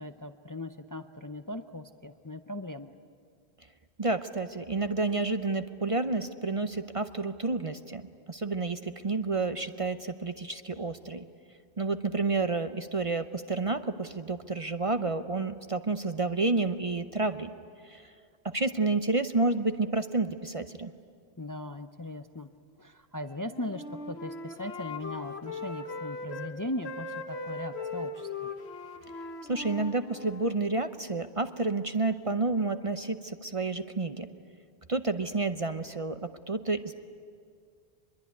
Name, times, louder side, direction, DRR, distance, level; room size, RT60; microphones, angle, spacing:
voice 1, 0.0-2.9 21.4-22.5 22.8-28.5, left 1 dB, 25° left, 8 dB, 0.6 m, -39 dB
voice 2, 4.0-8.0 8.3-11.3 11.8-17.5 17.8-18.1 18.4-20.9 29.5-34.3 34.9-37.0, right 3 dB, 35° right, 9 dB, 0.7 m, -30 dB
Wind instrument woodwind instrument, 23.4-26.5 26.8-30.6, left 3 dB, 80° left, 1.7 m, -39 dB
24.0 x 22.0 x 9.5 m, 2.2 s
omnidirectional pair, 1.1 m